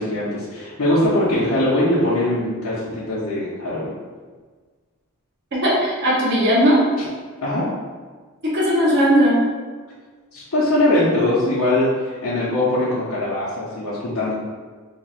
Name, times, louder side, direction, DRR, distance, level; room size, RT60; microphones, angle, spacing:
voice 1, 0.0-3.9 7.4-7.7 10.3-14.3, left 1 dB, 80° left, -9 dB, 0.7 m, -21 dB
voice 2, 5.5-6.8 8.4-9.4, equal, 50° right, -7 dB, 0.8 m, -17 dB
2.9 x 2.4 x 4.2 m, 1.5 s
head